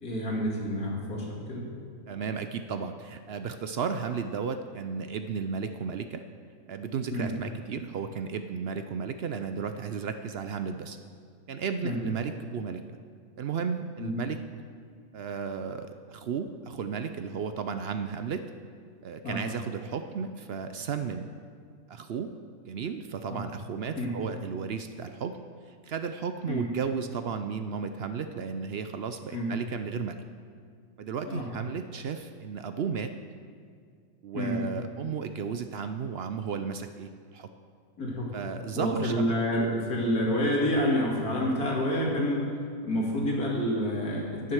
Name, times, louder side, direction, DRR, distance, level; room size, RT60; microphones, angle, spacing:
voice 1, 0.0-1.7 7.1-7.3 11.8-12.0 14.0-14.1 19.2-19.4 23.3-23.4 24.0-24.1 26.5-26.7 29.3-29.5 31.3-31.5 34.3-34.6 38.0-38.3 38.7-42.5 42.8-44.5, equal, 90° left, -3 dB, 2.8 m, -28 dB
voice 2, 2.1-6.2 6.7-11.0 11.5-12.8 13.4-14.4 15.1-18.5 19.0-21.3 21.9-22.3 22.7-25.4 25.8-30.2 31.0-33.1 34.2-37.5 38.3-39.2, right 6 dB, 65° right, 8 dB, 0.6 m, -34 dB
10.5 x 9.5 x 6.3 m, 2.2 s
omnidirectional pair, 1.6 m